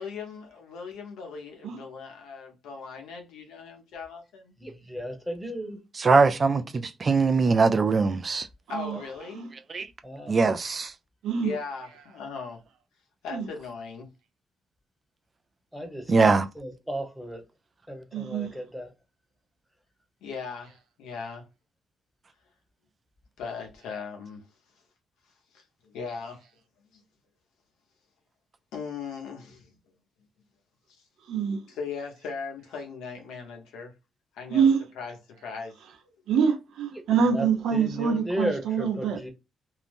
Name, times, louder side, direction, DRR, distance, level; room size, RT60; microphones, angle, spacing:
voice 1, 0.0-4.5 8.7-9.4 11.4-12.6 13.2-14.1 20.2-21.4 23.4-24.4 25.5-26.4 26.9-27.0 28.7-29.7 31.7-33.9 34.3-34.7 35.0-35.8 36.0-36.1, left 5 dB, 90° left, 0.8 m, -38 dB
voice 2, 4.6-5.8 8.9-9.0 10.0-10.4 15.7-16.2 16.5-17.4 17.9-18.9 36.9-37.0 37.3-37.5 37.7-39.3, equal, ahead, 0.9 m, -34 dB
voice 3, 6.0-8.5 9.7-9.9 10.3-10.9 16.1-16.5, right 4 dB, 35° right, 0.3 m, -21 dB
voice 4, 8.7-9.5 11.2-11.6 13.3-13.5 18.1-18.5 31.3-31.6 34.5-34.9 36.3-39.3, right 6 dB, 80° right, 0.6 m, -25 dB
2.6 x 2.0 x 3.3 m
cardioid pair, 90°, 0 cm